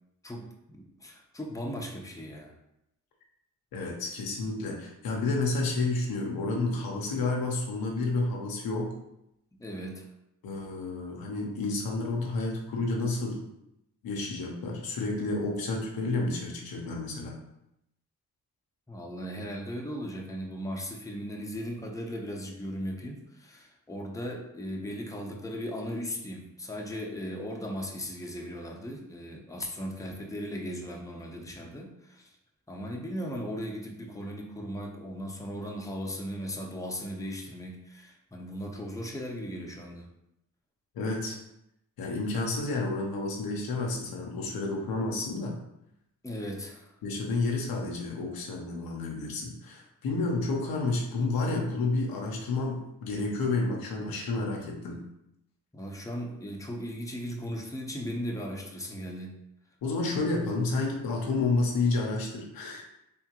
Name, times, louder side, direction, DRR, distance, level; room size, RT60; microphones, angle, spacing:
voice 1, 0.2-2.5 9.6-10.0 18.9-32.3 32.7-40.1 46.2-46.9 55.7-59.4, equal, 10° left, 0 dB, 0.8 m, -37 dB
voice 2, 3.7-8.9 10.4-13.4 14.0-17.4 40.9-41.4 42.0-45.6 47.0-55.0 59.8-62.8, left 3 dB, 85° left, 0 dB, 0.8 m, -30 dB
3.6 x 3.5 x 2.9 m, 0.83 s
cardioid pair, 55°, 35 cm